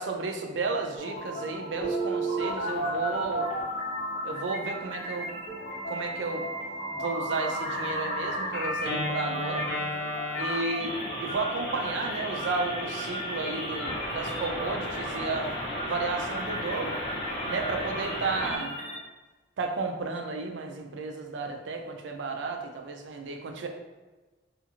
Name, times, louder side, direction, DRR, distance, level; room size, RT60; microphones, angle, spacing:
voice 1, 0.0-3.5 4.2-5.3 5.9-6.5 6.9-9.7 10.4-10.9 11.2-15.5 15.8-17.0 17.5-18.8 19.6-23.7, right 3 dB, 75° right, 4 dB, 0.4 m, -33 dB
sound 1, 1.0-19.0, right 1 dB, 35° left, 0.7 m, -38 dB
Telephone, 1.8-4.3 5.7-18.5, equal, 65° left, 0.9 m, -33 dB
2.5 x 2.4 x 2.8 m, 1.2 s
head